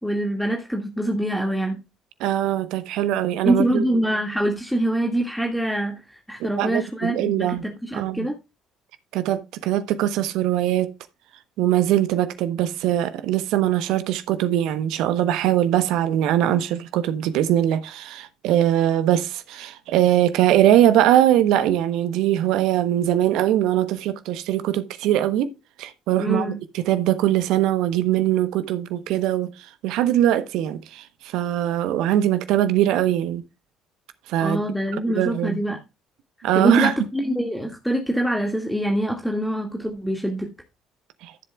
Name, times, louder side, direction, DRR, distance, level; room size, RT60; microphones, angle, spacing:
voice 1, 0.0-1.8 3.4-8.4 26.2-26.6 34.4-35.8 36.6-40.5, right 1 dB, ahead, 2.0 m, -24 dB
voice 2, 2.2-3.8 6.4-8.3 9.1-10.9 11.6-25.5 25.8-33.4 34.3-34.6 35.1-35.6 36.4-36.9 41.2-41.3, right 12 dB, 65° right, 0.9 m, -21 dB
14.5 x 7.5 x 2.3 m
figure-of-eight pair, 55°, 0 cm